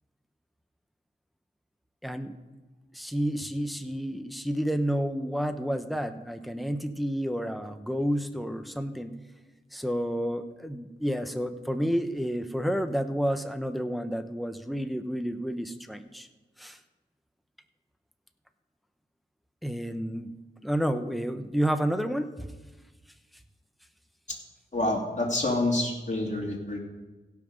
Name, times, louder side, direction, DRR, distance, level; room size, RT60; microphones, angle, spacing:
voice 1, 2.0-2.3 2.9-9.1 9.7-16.3 16.6-16.8 19.6-20.3 20.6-22.5, equal, ahead, 8 dB, 0.9 m, -30 dB
voice 2, 24.7-26.8, left 2 dB, 35° left, -2 dB, 2.7 m, -27 dB
16.5 x 6.0 x 5.2 m, 1.2 s
wide cardioid pair, 45°, 20 cm